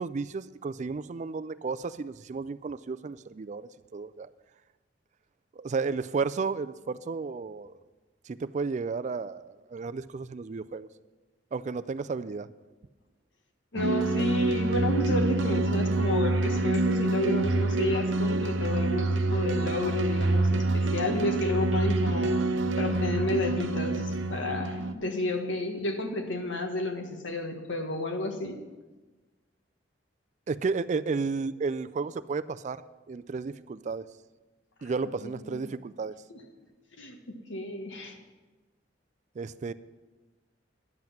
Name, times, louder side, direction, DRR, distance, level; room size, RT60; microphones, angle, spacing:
voice 1, 0.0-4.3 5.6-7.8 8.3-10.9 11.5-12.5 30.5-32.8 33.1-34.1 34.8-36.1 39.4-39.7, right 4 dB, 40° right, 14 dB, 0.4 m, -33 dB
voice 2, 13.7-22.4 22.8-28.6 35.2-35.7 36.3-36.4 37.0-37.2 37.5-38.2, left 1 dB, 85° left, 4 dB, 1.5 m, -31 dB
sound 1, 13.8-24.9, right 2 dB, 90° right, 0.7 m, -26 dB
10.5 x 7.7 x 7.1 m, 1.2 s
head